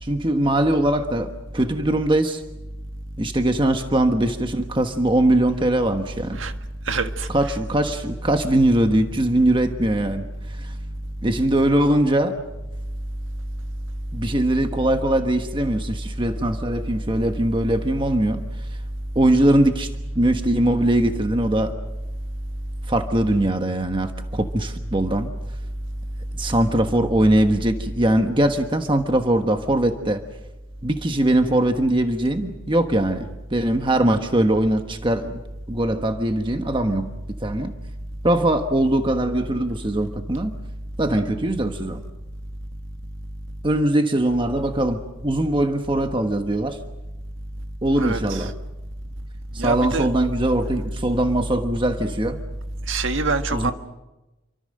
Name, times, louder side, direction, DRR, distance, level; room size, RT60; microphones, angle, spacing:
voice 1, 0.0-2.4 3.2-6.4 7.3-10.7 11.2-12.4 14.1-18.4 19.1-19.9 20.1-21.7 22.9-25.3 26.3-30.2 30.8-35.4 35.7-37.1 37.4-37.7 38.2-40.5 41.0-42.0 43.6-46.8 47.8-48.5 49.5-52.4 53.5-53.7, right 1 dB, 25° right, 1.2 m, -21 dB
voice 2, 6.9-7.3 48.0-48.5 49.6-50.1 52.9-53.7, right 3 dB, 85° right, 1.7 m, -25 dB
28.0 x 24.5 x 6.6 m
head